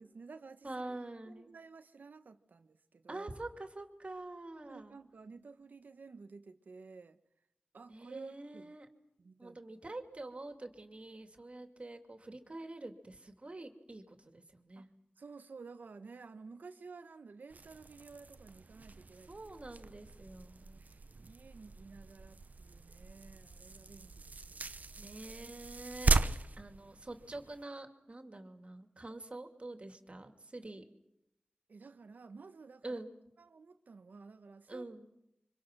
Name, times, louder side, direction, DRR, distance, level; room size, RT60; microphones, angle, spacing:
voice 1, 0.0-1.0 1.3-3.3 4.7-7.2 7.7-8.7 9.2-9.6 14.8-14.9 15.2-19.3 20.8-25.2 31.7-33.0 33.4-34.8, right 4 dB, 90° right, 1.1 m, -53 dB
voice 2, 0.6-1.5 3.1-5.0 7.9-8.9 9.4-14.9 19.3-20.8 25.0-26.1 26.6-30.8 32.8-33.1 34.7-35.1, right 2 dB, 45° right, 2.7 m, -46 dB
sound 1, 17.5-27.6, right 3 dB, 65° right, 0.9 m, -38 dB
29.5 x 25.0 x 6.2 m
wide cardioid pair, 50°, 3 cm